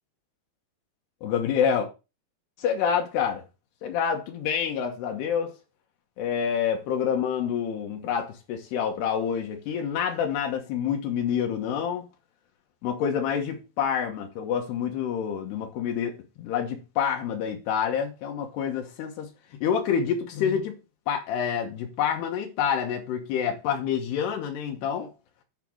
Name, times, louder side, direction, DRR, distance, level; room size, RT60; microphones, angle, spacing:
voice 1, 1.2-1.9 2.6-3.4 3.8-5.5 6.2-12.1 12.8-19.3 19.6-20.8 21.1-25.1, left 8 dB, 85° left, 3.3 m, -27 dB
9.1 x 5.1 x 6.2 m
omnidirectional pair, 4.6 m